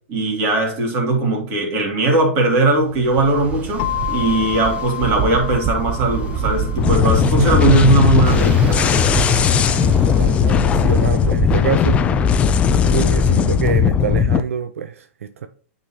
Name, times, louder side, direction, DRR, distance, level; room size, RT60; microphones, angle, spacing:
voice 1, 0.1-9.1, right 2 dB, 35° right, 2.5 m, -19 dB
Ocean, 2.9-12.8, right 6 dB, 15° right, 0.7 m, -26 dB
sound 1, 3.8-11.6, left 12 dB, 50° left, 0.7 m, -32 dB
sound 2, 6.8-14.4, left 7 dB, 15° left, 0.3 m, -17 dB
voice 2, 10.1-12.0 12.8-15.5, right 7 dB, 80° right, 0.6 m, -26 dB
8.9 x 4.1 x 2.8 m
hypercardioid pair, 145°, 7 cm